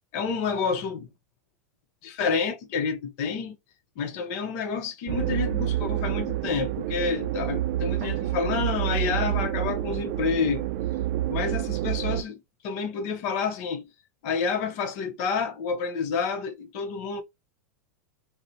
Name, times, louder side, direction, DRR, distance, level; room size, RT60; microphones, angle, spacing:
voice 1, 0.1-1.1 2.0-3.6 4.0-10.7 11.3-13.9 14.2-17.2, left 5 dB, 55° left, 0.8 m, -29 dB
sound 1, 5.1-12.2, right 13 dB, 55° right, 0.4 m, -28 dB
3.7 x 2.1 x 2.7 m
hypercardioid pair, 110°, 8 cm